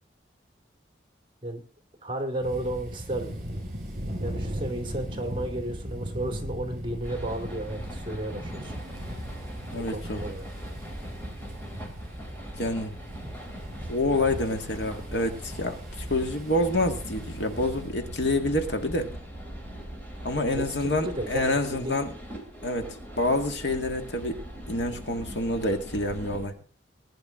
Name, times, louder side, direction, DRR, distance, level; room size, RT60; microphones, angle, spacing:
voice 1, 2.0-3.3 4.2-8.8 9.7-10.5 20.4-21.9, right 1 dB, 25° right, 4 dB, 2.6 m, -33 dB
sound 1, 2.4-17.9, equal, 45° right, 5.9 m, -38 dB
sound 2, 7.0-26.5, equal, 10° left, 3.3 m, -40 dB
voice 2, 9.7-10.2 12.5-13.0 13.9-19.1 20.2-22.1 22.6-26.5, left 1 dB, 70° left, 5 dB, 2.0 m, -28 dB
20.5 x 10.5 x 3.9 m, 0.40 s
head